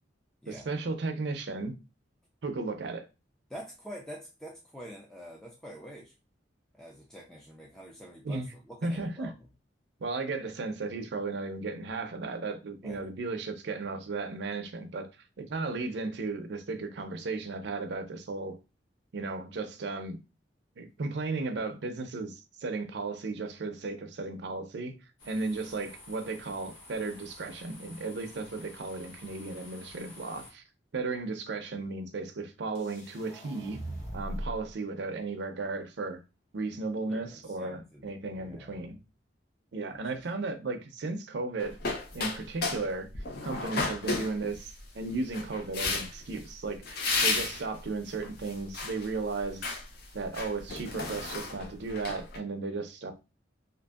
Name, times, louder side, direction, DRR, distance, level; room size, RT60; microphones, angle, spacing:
voice 1, 0.5-1.8 2.4-3.1 8.2-8.5 8.8-9.3 10.0-15.1 15.4-18.6 19.1-20.2 20.8-22.3 22.6-25.0 25.2-30.6 30.9-33.8 34.1-36.2 36.5-39.0 39.7-41.8 42.1-43.1 43.4-49.7 50.1-53.1, right 3 dB, 65° right, 0.5 m, -35 dB
voice 2, 3.5-6.1 6.7-9.3 12.8-13.1 37.1-38.9 39.9-40.0, equal, 5° left, 0.3 m, -46 dB
sound 1, 25.2-30.5, left 2 dB, 90° left, 0.9 m, -51 dB
sound 2, 32.8-34.7, right 1 dB, 40° left, 1.1 m, -39 dB
sound 3, 41.6-42.9 43.1-44.8 45.3-46.3 46.8-47.6 48.2-49.1 49.4-49.8 50.2-52.4, left 3 dB, 55° left, 0.6 m, -32 dB
2.7 x 2.6 x 2.2 m
head